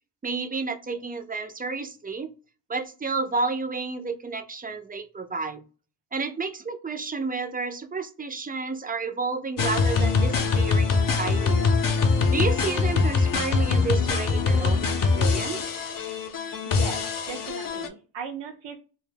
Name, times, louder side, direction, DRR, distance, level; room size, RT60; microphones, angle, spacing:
voice 1, 0.2-2.3 2.7-5.6 6.1-11.7 12.3-14.9 15.2-15.6, right 4 dB, 20° right, 7 dB, 0.3 m, -31 dB
sound 1, 9.6-17.9, left 4 dB, 45° left, 0.5 m, -23 dB
voice 2, 16.4-18.8, right 6 dB, 70° right, 3 dB, 0.5 m, -38 dB
2.2 x 2.0 x 3.2 m, 0.36 s
cardioid pair, 65°, 46 cm